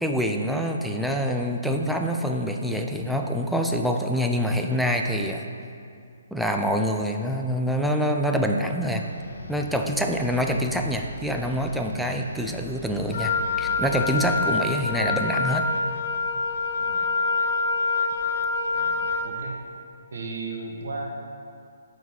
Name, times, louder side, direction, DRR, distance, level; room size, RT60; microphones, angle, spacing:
voice 1, 0.0-5.4 6.3-9.0 9.5-13.3 13.6-15.7, equal, ahead, 2 dB, 0.4 m, -26 dB
sound 1, 9.0-15.3, equal, 75° left, 1.0 m, -41 dB
Wind instrument woodwind instrument, 13.1-19.4, left 4 dB, 50° left, 0.6 m, -26 dB
voice 2, 18.7-19.6 20.1-21.1, right 3 dB, 55° right, 0 dB, 1.1 m, -36 dB
7.0 x 3.9 x 5.8 m, 2.4 s
figure-of-eight pair, 130°, 0 cm